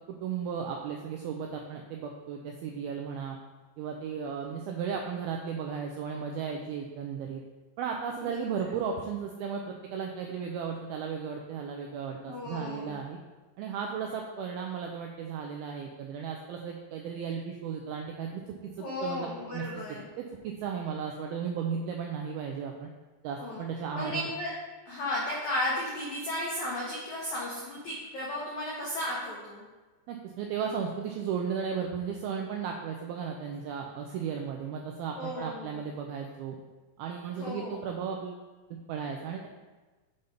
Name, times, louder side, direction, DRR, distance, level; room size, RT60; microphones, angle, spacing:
voice 1, 0.1-3.4 3.8-7.4 7.8-13.2 13.6-18.4 18.8-19.6 20.2-22.9 23.2-24.3 30.1-36.6 37.0-38.4 38.9-39.5, right 6 dB, 90° right, 1 dB, 2.1 m, -35 dB
voice 2, 12.3-13.0 18.8-20.1 23.4-23.6 23.9-24.5 24.9-29.6 35.2-35.8 37.4-37.9, left 1 dB, 80° left, -5 dB, 1.7 m, -34 dB
6.9 x 4.0 x 5.1 m, 1.2 s
omnidirectional pair, 5.0 m